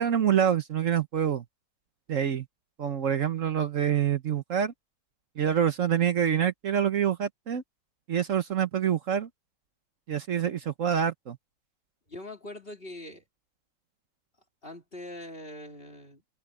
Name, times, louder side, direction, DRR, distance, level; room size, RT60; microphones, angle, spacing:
voice 1, 0.0-1.4 2.1-2.5 2.8-4.7 5.4-7.6 8.1-9.3 10.1-11.4, right 9 dB, 60° right, 1.3 m, -26 dB
voice 2, 12.1-13.2 14.6-16.2, left 1 dB, 40° left, 3.6 m, -42 dB
omnidirectional pair, 1.6 m